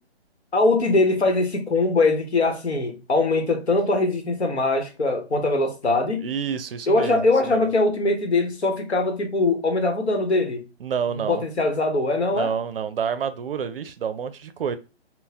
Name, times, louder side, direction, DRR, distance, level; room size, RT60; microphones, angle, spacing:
voice 1, 0.5-6.3 6.9-10.6 11.1-12.5, left 2 dB, 90° left, 0.9 m, -22 dB
voice 2, 6.2-7.7 10.8-11.4 12.3-14.8, right 7 dB, 60° right, 0.4 m, -28 dB
3.8 x 2.0 x 2.8 m
figure-of-eight pair, 140°, 32 cm